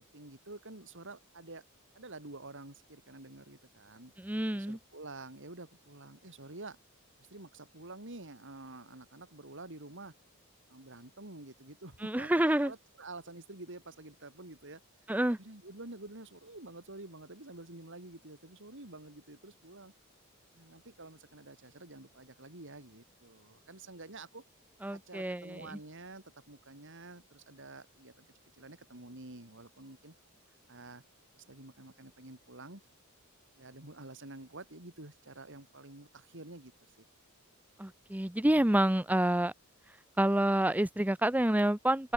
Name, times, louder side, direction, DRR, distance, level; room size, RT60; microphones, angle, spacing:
voice 1, 0.0-1.6 1.9-6.8 7.2-10.1 10.7-14.8 15.1-19.9 20.5-24.4 24.9-28.3 28.5-30.1 30.7-31.0 31.4-32.8 33.6-37.1, right 2 dB, 60° right, 4.1 m, -49 dB
voice 2, 4.2-4.8 12.0-12.7 15.1-15.4 24.8-25.6 37.8-39.5 40.2-42.1, right 1 dB, 5° right, 0.7 m, -28 dB
open air
head